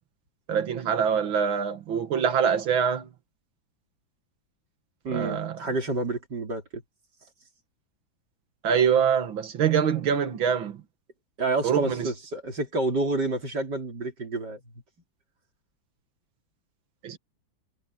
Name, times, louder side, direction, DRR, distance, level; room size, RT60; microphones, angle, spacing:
voice 1, 0.5-3.1 5.1-5.6 8.6-10.8 11.6-12.1 17.0-17.2, right 7 dB, 85° right, 2.4 m, -24 dB
voice 2, 5.0-6.8 11.4-14.6, right 2 dB, 60° right, 4.2 m, -29 dB
omnidirectional pair, 2.1 m